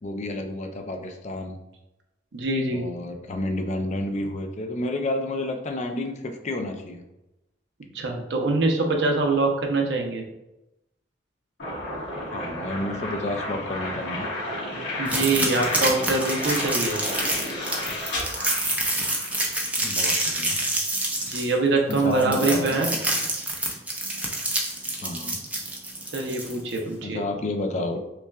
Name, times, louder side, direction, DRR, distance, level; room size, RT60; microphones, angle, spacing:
voice 1, 0.0-1.6 2.7-7.0 12.3-14.3 19.8-20.6 21.9-22.8 25.0-25.4 27.0-28.0, left 2 dB, 40° left, 4 dB, 0.4 m, -30 dB
voice 2, 2.3-2.9 7.9-10.2 15.0-17.0 21.3-22.9 26.1-27.2, right 3 dB, 70° right, 2 dB, 0.7 m, -24 dB
sound 1, 11.6-19.4, left 1 dB, 85° left, 1.4 m, -32 dB
sound 2, 15.0-26.8, right 1 dB, 10° right, 0.6 m, -27 dB
5.4 x 2.3 x 2.4 m, 0.94 s
head